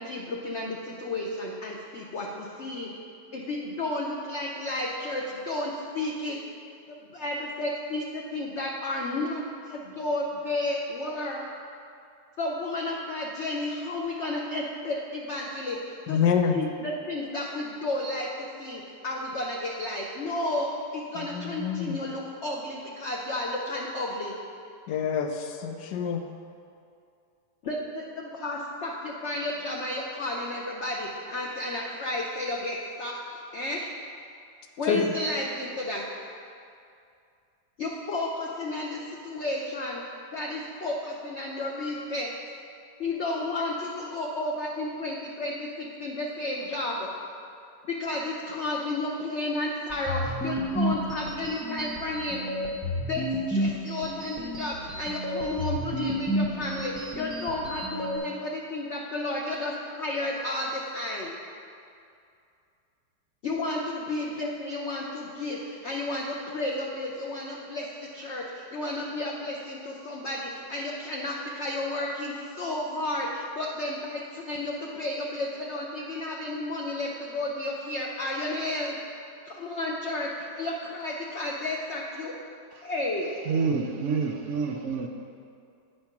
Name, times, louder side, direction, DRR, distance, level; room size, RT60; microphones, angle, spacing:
voice 1, 0.0-2.9 3.3-6.4 6.9-11.4 12.4-16.2 16.5-24.3 27.6-33.9 34.8-36.0 37.8-40.0 40.3-42.3 43.0-47.1 47.8-52.5 53.1-61.3 63.4-79.0 79.4-82.4 82.8-83.3, left 2 dB, 60° left, -1 dB, 0.7 m, -32 dB
voice 2, 16.1-16.6 21.1-22.0 24.9-26.2 34.9-35.1, left 7 dB, 80° left, 5 dB, 1.3 m, -26 dB
sound 1, 49.9-58.2, equal, 5° left, 0.3 m, -31 dB
voice 3, 83.5-85.1, right 5 dB, 80° right, 2 dB, 0.6 m, -28 dB
9.4 x 4.4 x 5.8 m, 2.5 s
omnidirectional pair, 1.9 m